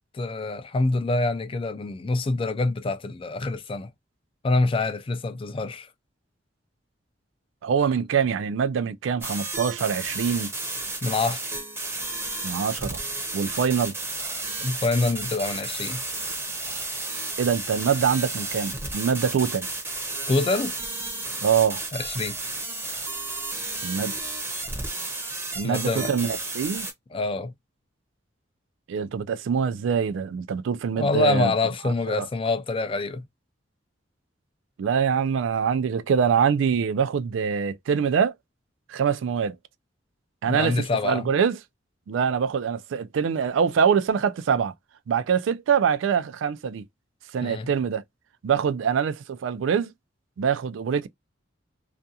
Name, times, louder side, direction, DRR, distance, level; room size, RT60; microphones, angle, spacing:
voice 1, 0.1-3.9 4.4-5.9 11.0-11.4 14.6-16.0 20.3-20.7 21.9-22.4 25.6-26.1 27.1-27.5 31.0-33.3 40.5-41.3 47.4-47.7, left 3 dB, 30° left, 0.4 m, -26 dB
voice 2, 7.6-10.5 12.4-13.0 13.3-14.0 17.4-19.7 21.4-21.8 23.8-24.1 25.5-26.9 28.9-31.5 31.8-32.3 34.8-38.3 38.9-39.6 40.4-41.6 42.1-44.7 45.1-46.9 47.3-48.0 48.4-49.9 50.4-51.1, right 7 dB, 85° right, 0.3 m, -24 dB
sound 1, 9.2-26.9, right 2 dB, 15° right, 0.7 m, -32 dB
2.4 x 2.3 x 2.7 m
head